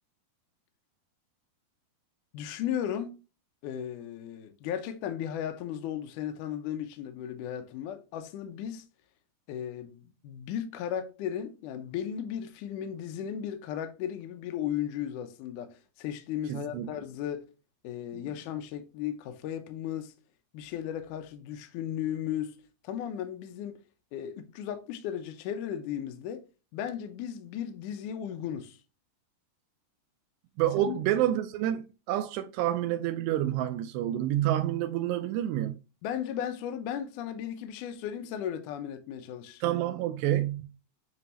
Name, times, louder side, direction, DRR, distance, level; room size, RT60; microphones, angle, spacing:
voice 1, 2.3-3.2 3.6-8.8 9.5-17.4 17.8-20.1 20.5-22.6 22.8-23.8 24.1-26.4 26.7-28.8 30.8-31.0 36.0-39.6, left 10 dB, 90° left, 1.8 m, -35 dB
voice 2, 16.5-16.9 18.1-18.2 30.6-35.8 39.6-40.7, right 12 dB, 85° right, 2.7 m, -28 dB
9.2 x 3.6 x 2.9 m
omnidirectional pair, 4.9 m